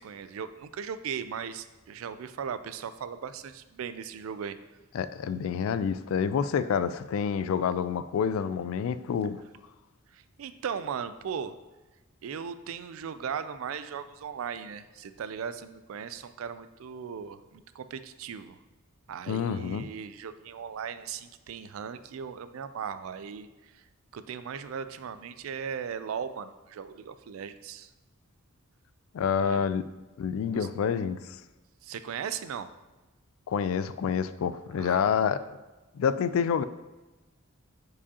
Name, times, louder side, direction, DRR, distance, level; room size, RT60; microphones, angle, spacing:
voice 1, 0.0-4.6 10.1-11.5 12.2-18.6 19.1-23.8 24.1-27.9 29.4-29.7 30.5-30.7 31.8-32.7 34.8-35.1, right 7 dB, 80° right, 12 dB, 0.4 m, -38 dB
voice 2, 4.9-9.4 19.3-19.9 29.1-29.8 30.2-31.4 33.5-35.4 35.9-36.6, left 7 dB, 75° left, 13 dB, 0.3 m, -28 dB
6.9 x 4.8 x 2.8 m, 1.1 s
head